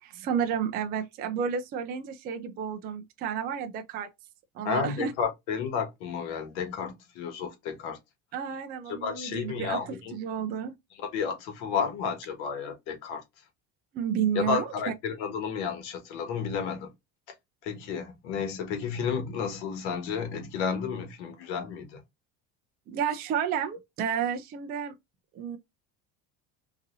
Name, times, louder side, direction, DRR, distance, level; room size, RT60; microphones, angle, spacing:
voice 1, 0.0-4.1 4.5-5.1 8.3-10.8 13.9-14.7 22.9-24.9 25.3-25.6, right 8 dB, 30° right, 0.4 m, -31 dB
voice 2, 4.6-8.0 8.9-10.1 11.0-13.2 14.3-16.9 17.6-22.0, left 6 dB, 85° left, 1.6 m, -32 dB
3.9 x 2.7 x 2.6 m
cardioid pair, 165°, 33 cm